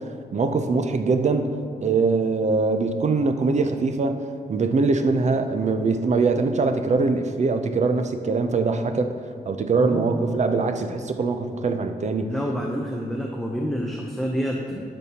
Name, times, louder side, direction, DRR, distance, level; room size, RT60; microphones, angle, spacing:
voice 1, 0.3-1.5 1.8-4.2 4.5-9.1 9.5-12.3, right 4 dB, 45° right, 7 dB, 0.5 m, -22 dB
voice 2, 9.8-10.2 12.3-14.8, equal, ahead, -1 dB, 0.5 m, -28 dB
12.5 x 5.4 x 2.9 m, 2.2 s
wide cardioid pair, 120°, 17 cm